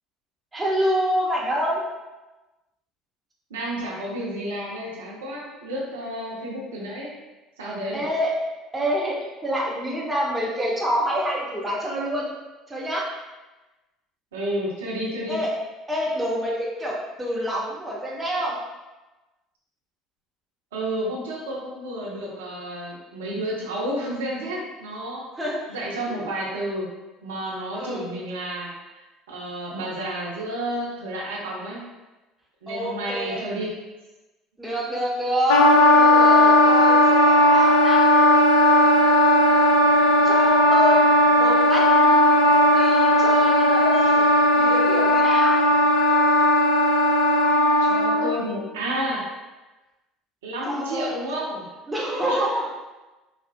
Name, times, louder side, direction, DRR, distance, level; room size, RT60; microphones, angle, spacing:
voice 1, 0.5-1.8 7.9-8.3 8.7-9.1 9.4-12.3 12.7-13.1 15.3-15.5 15.9-18.6 25.4-25.6 26.1-26.3 27.8-28.0 32.7-33.5 34.6-35.6 35.9-38.0 40.2-41.9 42.7-44.2 44.6-45.6 50.7-51.1 51.9-52.7, equal, 15° right, -4 dB, 0.9 m, -27 dB
voice 2, 3.5-7.1 7.6-8.0 14.3-15.4 20.7-25.2 25.7-26.9 27.2-28.7 29.3-31.8 32.6-33.7 47.8-49.2 50.4-51.6 52.3-52.5, right 1 dB, 75° right, -5 dB, 0.6 m, -31 dB
Wind instrument woodwind instrument, 35.5-48.4, left 1 dB, 75° left, 0.3 m, -17 dB
4.1 x 2.3 x 2.2 m, 1.1 s
figure-of-eight pair, 60°, 0 cm